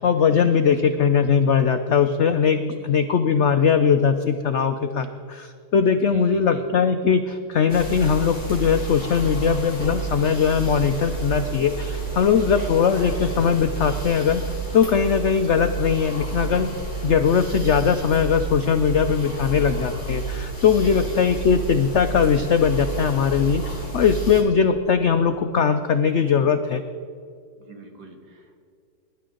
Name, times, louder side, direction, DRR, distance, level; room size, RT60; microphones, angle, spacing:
voice 1, 0.0-14.4 14.7-16.7 17.0-26.8, left 6 dB, 85° left, 8 dB, 0.6 m, -20 dB
voice 2, 6.0-6.7 12.6-12.7 20.6-21.4 27.6-28.6, right 3 dB, 65° right, 3 dB, 2.1 m, -43 dB
sound 1, 7.7-24.4, right 4 dB, 25° left, 3.0 m, -30 dB
21.5 x 11.0 x 3.8 m, 2.3 s
omnidirectional pair, 1.9 m